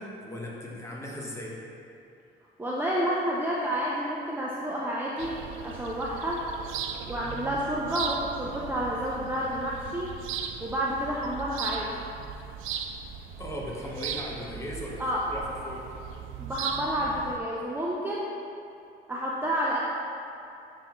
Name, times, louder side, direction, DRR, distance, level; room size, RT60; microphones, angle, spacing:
voice 1, 0.0-1.6 13.4-15.0 15.3-15.9, left 1 dB, 15° left, -4 dB, 1.3 m, -37 dB
voice 2, 2.6-6.4 7.1-10.1 10.6-11.9 15.0-15.3 16.4-18.3 19.1-19.8, equal, 10° right, -5 dB, 0.6 m, -30 dB
sound 1, 5.2-17.4, right 7 dB, 85° right, 0.4 m, -38 dB
9.9 x 3.7 x 3.1 m, 2.6 s
cardioid pair, 90°, 20 cm